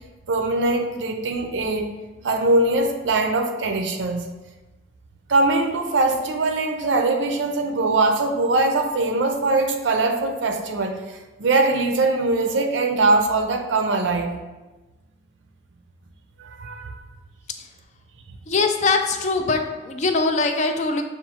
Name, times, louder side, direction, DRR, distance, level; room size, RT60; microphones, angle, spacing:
voice 1, 0.3-1.9 2.2-4.3 5.3-14.4 16.4-17.0, right 2 dB, 80° right, 5 dB, 0.5 m, -22 dB
voice 2, 18.5-21.0, left 3 dB, 35° left, 5 dB, 0.3 m, -22 dB
6.5 x 2.3 x 2.9 m, 1.1 s
head